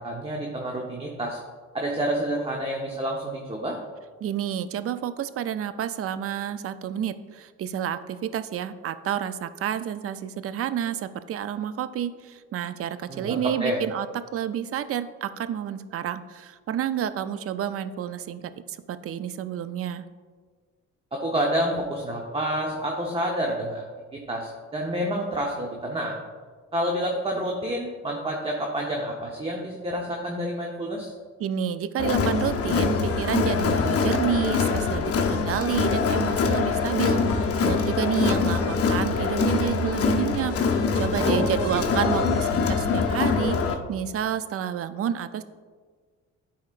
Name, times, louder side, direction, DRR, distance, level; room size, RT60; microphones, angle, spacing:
voice 1, 0.0-1.4 1.7-3.8 13.1-13.8 21.1-23.8 24.1-26.2 26.7-31.1 41.2-42.4, right 1 dB, 20° right, 0 dB, 0.8 m, -28 dB
voice 2, 4.2-14.1 14.3-20.0 31.4-45.4, right 9 dB, 50° right, 13 dB, 0.4 m, -29 dB
Crowd, 32.0-43.7, left 5 dB, 50° left, 0.7 m, -24 dB
11.0 x 4.3 x 2.5 m, 1.5 s
cardioid pair, 90°, 30 cm